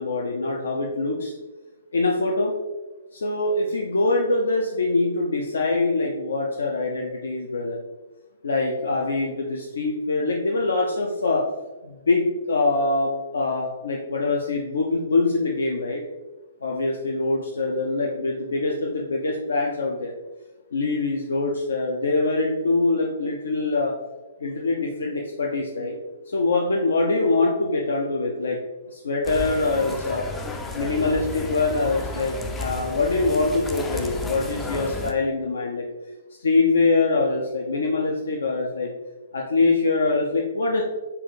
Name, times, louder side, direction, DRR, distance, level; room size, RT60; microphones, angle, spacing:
voice 1, 0.0-1.3 1.9-2.5 3.1-7.8 8.4-11.4 11.8-16.0 16.6-20.1 20.7-23.9 24.4-26.0 26.3-28.6 28.9-30.2 30.7-35.8 36.4-38.9 39.3-40.8, left 3 dB, 65° left, -1 dB, 0.5 m, -24 dB
sound 1, 29.2-35.1, left 2 dB, 10° left, 0.4 m, -32 dB
4.2 x 2.5 x 3.7 m, 1.2 s
figure-of-eight pair, 120°, 0 cm